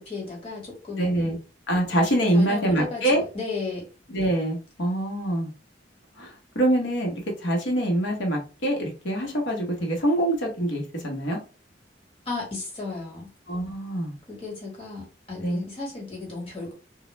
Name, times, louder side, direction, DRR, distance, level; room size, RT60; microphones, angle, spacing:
voice 1, 0.0-1.3 2.3-3.0 3.3-3.9 12.3-13.3 14.3-16.7, left 3 dB, 35° left, -3 dB, 1.3 m, -34 dB
voice 2, 1.0-1.4 1.7-3.2 4.1-5.5 6.2-7.1 7.4-11.4 13.5-14.2 15.4-15.6, right 1 dB, 80° left, 0 dB, 1.0 m, -25 dB
2.2 x 2.0 x 3.0 m, 0.34 s
head